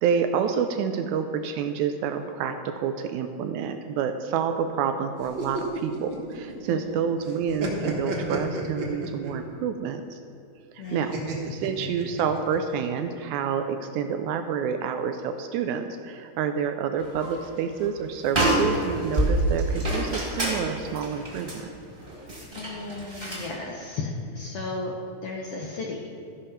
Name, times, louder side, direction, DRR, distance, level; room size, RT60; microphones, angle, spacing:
voice 1, 0.0-10.2 10.7-21.7, right 7 dB, 80° right, 7 dB, 1.8 m, -28 dB
sound 1, 5.2-6.9 7.3-9.5 11.1-12.6, right 2 dB, 50° right, 1.7 m, -32 dB
voice 2, 6.7-7.1 10.8-11.1 22.6-24.9 25.2-26.1, left 3 dB, 70° left, -2 dB, 1.4 m, -34 dB
sound 2, 17.0-17.5 17.8-17.9 18.2-23.5, right 1 dB, 20° right, 1.8 m, -27 dB
14.5 x 5.1 x 5.7 m, 2.7 s
omnidirectional pair, 3.7 m